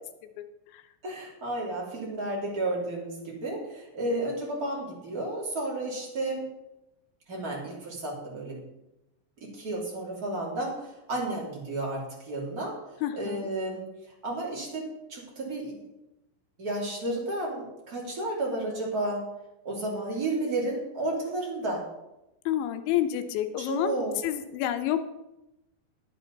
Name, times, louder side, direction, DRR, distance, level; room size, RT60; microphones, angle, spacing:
voice 1, 1.0-6.4 7.3-8.6 9.4-12.7 13.1-13.8 14.2-14.8 15.1-15.8 16.6-19.3 19.6-21.8 23.6-24.1, right 2 dB, 25° right, -4 dB, 2.3 m, -32 dB
voice 2, 13.0-13.5 22.5-24.0 24.2-25.0, left 12 dB, 80° left, 9 dB, 3.0 m, -29 dB
11.5 x 9.7 x 4.0 m, 0.92 s
omnidirectional pair, 5.4 m